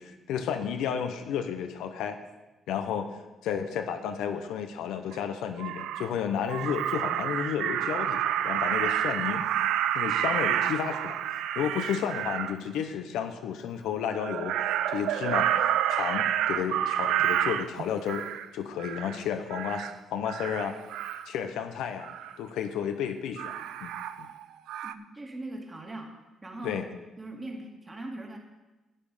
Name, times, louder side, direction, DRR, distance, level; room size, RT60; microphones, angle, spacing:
voice 1, 0.0-2.2 2.7-9.4 9.9-11.2 11.5-14.6 14.9-18.3 18.5-20.8 21.3-22.1 22.4-23.9 24.2-24.3 26.6-26.9, left 8 dB, 90° left, 7 dB, 0.9 m, -32 dB
Crow, 5.1-5.2 5.6-6.1 6.5-12.5 14.1-18.5 18.8-19.2 19.5-19.9 20.3-21.3 22.0-22.3 23.4-24.4 24.7-24.9, right 11 dB, 90° right, 0.4 m, -29 dB
voice 2, 24.8-26.2 26.4-26.7 27.2-28.4, right 2 dB, 25° right, 0 dB, 2.4 m, -40 dB
11.0 x 8.7 x 5.1 m, 1.1 s
cardioid pair, 90°, 0 cm